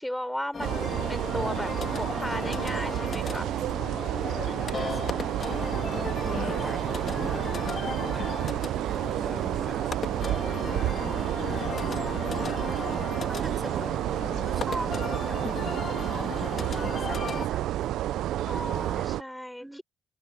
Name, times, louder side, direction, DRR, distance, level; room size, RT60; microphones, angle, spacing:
voice 1, 0.0-1.7 2.0-3.5 18.5-19.8, equal, 5° left, 6.0 m, -35 dB
sound 1, 0.5-17.5, left 6 dB, 50° left, 1.8 m, -36 dB
sound 2, 0.6-19.2, right 13 dB, 75° right, 0.6 m, -30 dB
voice 2, 4.3-7.7 8.1-18.0 18.4-19.1 19.6-19.8, right 1 dB, 15° right, 4.9 m, -43 dB
hypercardioid pair, 50°, 0 cm